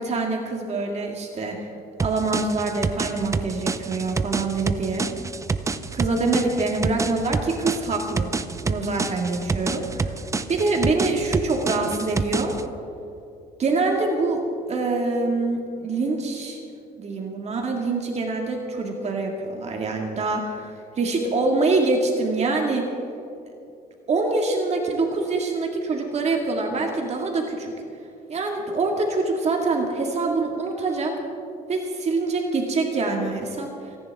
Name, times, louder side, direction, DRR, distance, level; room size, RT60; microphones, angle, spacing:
voice 1, 0.0-1.6 2.0-5.1 5.9-8.3 8.6-10.1 10.5-12.5 13.6-14.4 14.7-16.6 17.0-22.8 24.1-27.7 28.3-31.2 31.7-33.7, right 3 dB, 40° right, 1 dB, 2.0 m, -25 dB
sound 1, 2.0-12.7, right 4 dB, 20° right, 0.6 m, -28 dB
29.0 x 10.5 x 3.6 m, 2.6 s
cardioid pair, 110°, 17 cm